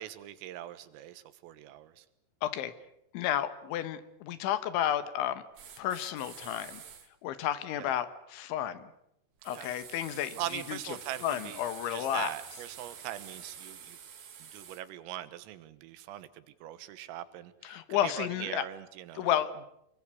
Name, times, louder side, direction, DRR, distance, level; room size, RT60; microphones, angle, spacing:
voice 1, 0.0-2.1 7.8-7.9 9.5-9.7 10.4-11.6 11.9-14.0 14.4-19.3, right 13 dB, 85° right, 14 dB, 4.0 m, -41 dB
voice 2, 2.4-2.7 3.1-5.4 5.8-6.8 7.2-8.8 9.5-10.8 11.2-12.3 17.6-18.7 19.2-19.7, left 11 dB, 75° left, 13 dB, 3.4 m, -32 dB
sound 1, 5.5-7.1 9.4-14.8, right 8 dB, 50° right, 2.6 m, -48 dB
26.5 x 22.0 x 8.4 m, 0.78 s
omnidirectional pair, 5.8 m